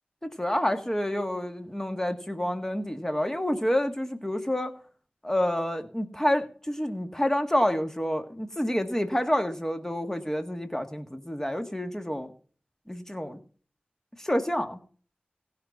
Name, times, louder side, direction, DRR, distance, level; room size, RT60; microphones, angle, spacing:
voice 1, 0.2-4.7 5.2-12.3 12.9-13.4 14.2-14.8, left 1 dB, 15° left, 7 dB, 1.8 m, -28 dB
16.5 x 5.8 x 5.9 m, 0.42 s
cardioid pair, 45°, 4 cm